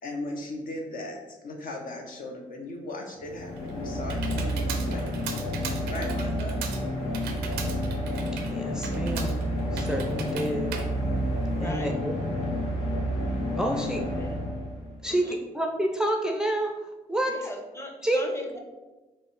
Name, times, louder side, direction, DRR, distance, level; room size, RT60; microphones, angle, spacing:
voice 1, 0.0-5.2 5.9-6.6, left 2 dB, 60° left, 2 dB, 0.7 m, -37 dB
sound 1, 3.2-15.1, equal, 85° left, 0.9 m, -30 dB
Computer keyboard, 3.3-11.9, right 7 dB, 85° right, 0.4 m, -40 dB
voice 2, 8.4-9.4 9.7-10.7 11.6-12.2 13.6-14.0 15.0-16.7 17.1-17.3 18.0-18.2, right 1 dB, 5° right, 2 dB, 0.4 m, -28 dB
voice 3, 11.5-11.9 13.7-13.9 14.2-14.4 15.0-15.4 17.2-18.6, left 1 dB, 15° left, 2 dB, 0.8 m, -39 dB
3.7 x 2.1 x 3.9 m, 1.1 s
hypercardioid pair, 45°, 16 cm